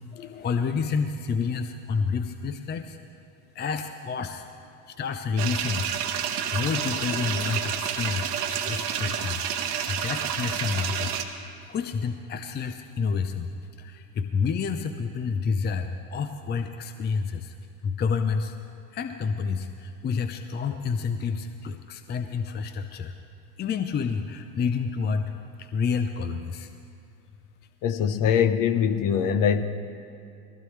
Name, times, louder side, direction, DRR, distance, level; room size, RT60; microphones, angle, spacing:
voice 1, 0.1-3.0 3.5-4.4 4.9-5.8 6.5-9.4 9.9-11.1 11.4-13.5 13.8-17.5 17.8-18.5 18.9-23.1 23.6-25.3 25.6-26.7, left 5 dB, 20° left, 8 dB, 0.6 m, -29 dB
sound 1, 5.4-11.3, right 8 dB, 80° right, 1.2 m, -29 dB
voice 2, 27.8-29.6, left 7 dB, 45° left, 10 dB, 1.0 m, -22 dB
20.0 x 15.5 x 3.2 m, 2.6 s
hypercardioid pair, 80°, 46 cm